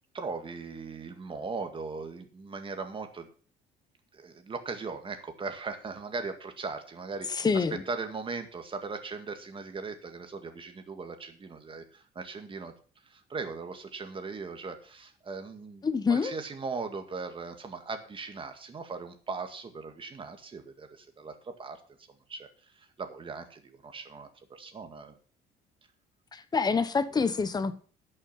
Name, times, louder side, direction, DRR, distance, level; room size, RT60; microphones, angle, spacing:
voice 1, 0.1-3.3 4.1-12.7 13.0-21.8 22.3-25.1, right 4 dB, 30° right, 1.9 m, -39 dB
voice 2, 7.4-7.8 15.8-16.3 26.3-27.7, left 5 dB, 25° left, 1.0 m, -26 dB
11.0 x 6.6 x 5.8 m
cardioid pair, 110°, 17 cm